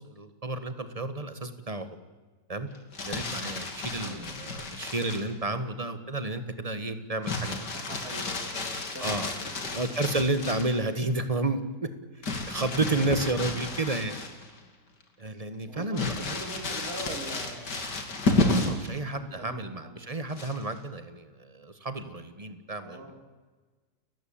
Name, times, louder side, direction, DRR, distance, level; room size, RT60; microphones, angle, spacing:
voice 1, 0.0-1.9 2.5-2.7 3.0-7.8 9.0-9.3 9.7-11.9 12.5-14.2 15.2-16.2 18.4-23.1, right 2 dB, 20° right, 10 dB, 1.5 m, -31 dB
Crumpling crinkling, 2.7-5.3 7.2-10.8 12.2-14.6 15.0-15.1 15.9-18.9 20.3-20.8, left 2 dB, 70° left, 3.3 m, -32 dB
voice 2, 7.7-10.1 15.7-17.9 19.1-20.1 22.8-23.1, right 2 dB, 55° right, 3 dB, 4.4 m, -43 dB
30.0 x 15.0 x 8.8 m, 1.3 s
omnidirectional pair, 1.9 m